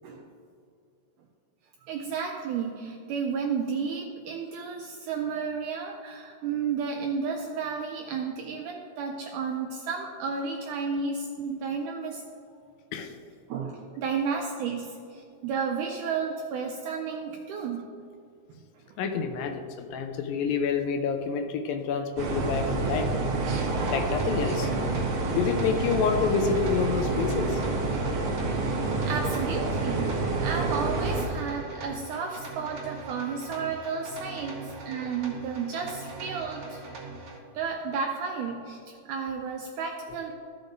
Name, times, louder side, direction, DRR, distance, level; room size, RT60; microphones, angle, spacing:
voice 1, 1.8-12.2 13.5-17.8 29.0-30.1 30.4-34.6 34.9-36.8 37.5-40.3, right 5 dB, 90° right, 2 dB, 1.8 m, -32 dB
voice 2, 19.0-23.1 23.9-24.7 25.3-27.6, left 6 dB, 80° left, 6 dB, 2.4 m, -28 dB
sound 1, 22.2-31.3, right 3 dB, 75° right, 1.3 m, -28 dB
sound 2, 23.7-37.4, right 3 dB, 55° right, 3.1 m, -42 dB
14.5 x 7.2 x 2.6 m, 2.4 s
omnidirectional pair, 4.2 m